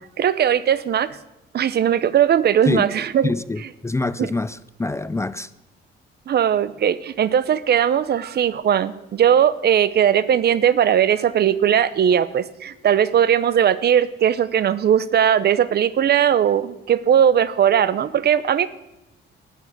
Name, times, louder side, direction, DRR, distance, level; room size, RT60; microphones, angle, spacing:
voice 1, 0.2-1.1 1.5-3.3 6.3-18.7, right 9 dB, 55° right, 16 dB, 0.7 m, -18 dB
voice 2, 3.2-5.5, left 3 dB, 15° left, 15 dB, 0.4 m, -25 dB
12.5 x 6.6 x 9.5 m, 0.92 s
cardioid pair, 90°, 20 cm